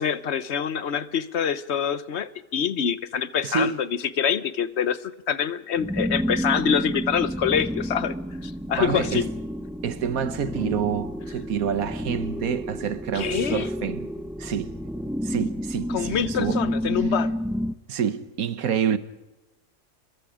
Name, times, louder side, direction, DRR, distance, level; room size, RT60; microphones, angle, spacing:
voice 1, 0.0-8.1 8.4-9.3 13.1-13.7 15.9-17.3, left 8 dB, 55° left, 1.1 m, -26 dB
voice 2, 3.4-3.8 8.8-9.3 9.8-14.1 14.4-14.7 15.2-16.6 17.9-19.0, right 7 dB, 85° right, 1.6 m, -27 dB
sound 1, 5.7-17.7, equal, 5° right, 0.3 m, -30 dB
28.0 x 22.5 x 5.0 m
omnidirectional pair, 1.5 m